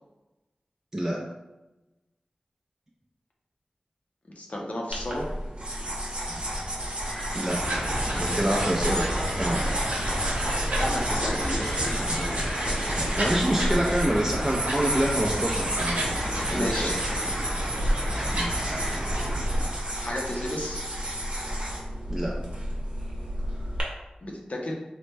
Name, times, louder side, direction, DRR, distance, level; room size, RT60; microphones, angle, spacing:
voice 1, 4.4-5.3 10.8-12.4 16.5-17.0 20.0-20.8 24.2-24.7, left 1 dB, 60° left, -1 dB, 0.6 m, -33 dB
sound 1, 4.9-23.8, right 1 dB, 40° right, 0.8 m, -32 dB
sound 2, 7.0-19.0, left 1 dB, 20° left, 0.8 m, -40 dB
voice 2, 7.3-7.8 8.2-9.1 9.4-9.7 13.2-16.2 16.5-17.1 18.3-18.5 22.1-22.4, right 1 dB, 20° right, -3 dB, 0.4 m, -27 dB
sound 3, 7.5-19.7, equal, 80° right, 1.0 m, -30 dB
3.0 x 2.1 x 3.3 m, 1.0 s
wide cardioid pair, 55°, 3 cm